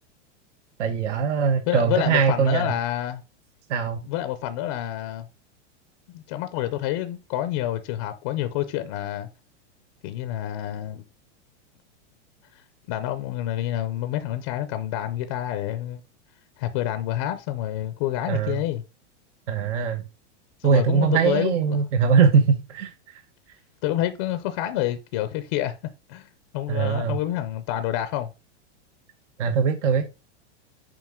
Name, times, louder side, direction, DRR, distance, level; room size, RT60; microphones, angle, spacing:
voice 1, 0.8-2.7 3.7-4.0 18.3-18.6 19.5-20.0 20.6-22.9 26.7-27.2 29.4-30.1, right 6 dB, 75° right, 1.1 m, -21 dB
voice 2, 1.7-3.2 4.0-5.3 6.1-9.3 10.0-11.0 12.9-16.0 16.6-18.8 20.6-21.8 23.8-25.8 26.1-28.3, left 12 dB, 25° left, 0.4 m, -28 dB
7.5 x 5.1 x 3.6 m
supercardioid pair, 170°, 36 cm